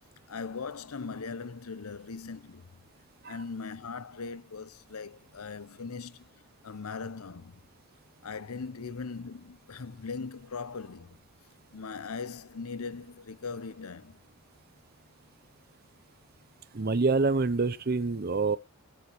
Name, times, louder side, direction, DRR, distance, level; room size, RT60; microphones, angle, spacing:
voice 1, 0.3-2.7 3.3-6.3 6.6-7.6 8.2-11.2 11.7-14.2, left 4 dB, 75° left, 0.8 m, -39 dB
voice 2, 16.7-18.6, right 3 dB, 45° right, 0.7 m, -26 dB
20.0 x 8.0 x 3.1 m
head